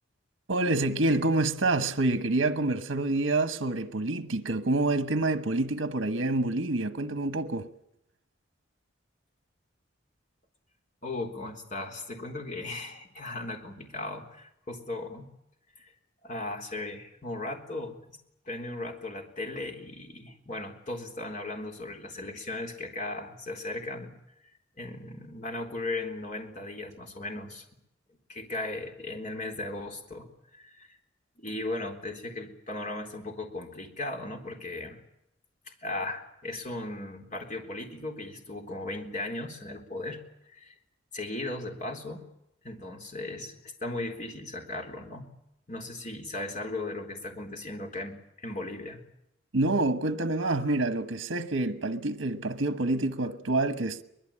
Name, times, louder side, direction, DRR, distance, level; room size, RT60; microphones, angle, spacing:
voice 1, 0.5-7.7 49.5-54.0, right 2 dB, 75° right, 1.2 m, -27 dB
voice 2, 11.0-15.3 15.8-15.9 16.2-18.2 18.5-24.2 24.4-27.7 28.3-30.9 31.4-35.0 35.8-40.7 41.1-42.3 42.6-45.3 45.7-49.1, left 2 dB, 40° left, 3.7 m, -37 dB
23.5 x 20.5 x 8.7 m
head